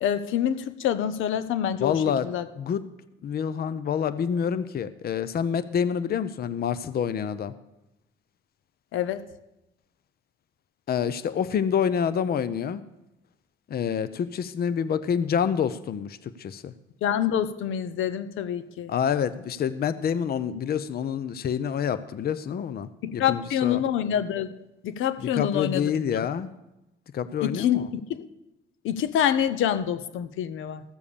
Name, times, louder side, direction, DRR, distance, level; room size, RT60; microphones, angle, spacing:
voice 1, 0.0-1.9 2.2-2.5 8.9-9.2 17.0-18.9 23.0-24.5 24.8-25.8 27.4-28.2 28.8-30.8, left 9 dB, 85° left, 13 dB, 0.7 m, -26 dB
voice 2, 1.8-2.3 2.6-2.9 3.2-7.5 10.9-12.8 13.7-16.7 18.9-23.8 25.2-26.5 27.1-27.9, left 8 dB, 50° left, 15 dB, 0.6 m, -27 dB
14.5 x 7.1 x 6.9 m, 0.93 s
cardioid pair, 90°, 20 cm